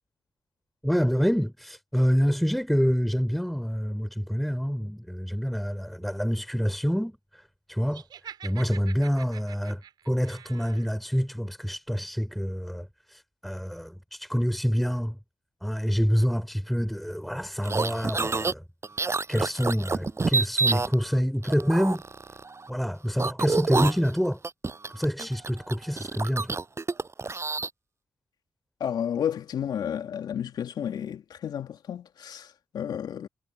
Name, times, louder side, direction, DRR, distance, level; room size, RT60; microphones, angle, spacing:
voice 1, 0.8-7.4 7.7-9.8 10.1-15.2 15.6-18.6 19.3-22.0 22.7-24.4 24.9-26.6, equal, ahead, 4.8 m, -27 dB
Laughter, 7.9-10.9, right 9 dB, 75° right, 4.0 m, -46 dB
sound 1, 17.6-18.5 18.8-20.9 21.4-22.7 23.2-27.7, right 4 dB, 40° right, 7.9 m, -28 dB
voice 2, 28.8-33.3, left 9 dB, 75° left, 3.0 m, -32 dB
supercardioid pair, 45°, 7 cm